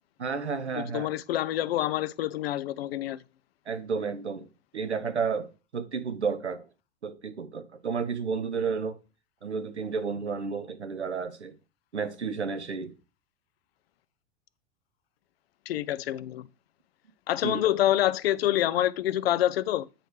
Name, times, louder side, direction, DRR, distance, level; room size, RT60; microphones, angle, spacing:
voice 1, 0.2-1.1 3.7-4.5 4.7-6.7 7.0-9.0 9.4-11.5 11.9-12.9 17.4-17.6, right 5 dB, 90° right, 0.9 m, -31 dB
voice 2, 0.7-3.2 15.7-16.5 17.3-19.9, left 13 dB, 65° left, 0.5 m, -27 dB
8.7 x 3.2 x 4.9 m
figure-of-eight pair, 90°, 33 cm